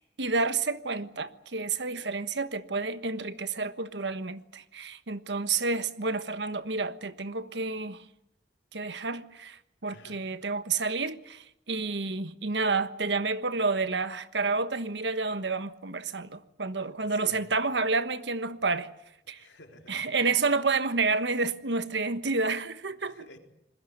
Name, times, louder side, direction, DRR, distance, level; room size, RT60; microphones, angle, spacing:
voice 1, 0.0-8.0 8.7-18.9 19.3-19.4 19.9-23.1, right 4 dB, 85° right, 1.3 m, -30 dB
voice 2, 9.9-10.2 16.8-17.4 19.3-20.4 22.9-23.4, left 2 dB, 90° left, 3.7 m, -52 dB
27.0 x 21.0 x 8.0 m
head